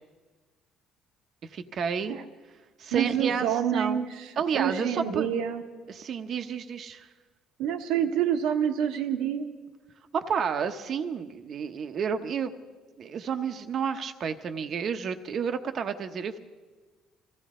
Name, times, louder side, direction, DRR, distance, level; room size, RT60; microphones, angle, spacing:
voice 1, 1.5-2.2 2.8-4.0 4.4-5.3 5.9-7.1 10.1-12.5 13.0-16.4, right 6 dB, 55° right, 7 dB, 0.9 m, -30 dB
voice 2, 2.9-5.6 7.6-9.6, right 9 dB, 85° right, 4 dB, 1.2 m, -27 dB
24.5 x 15.5 x 3.7 m, 1.3 s
supercardioid pair, 80°, 0 cm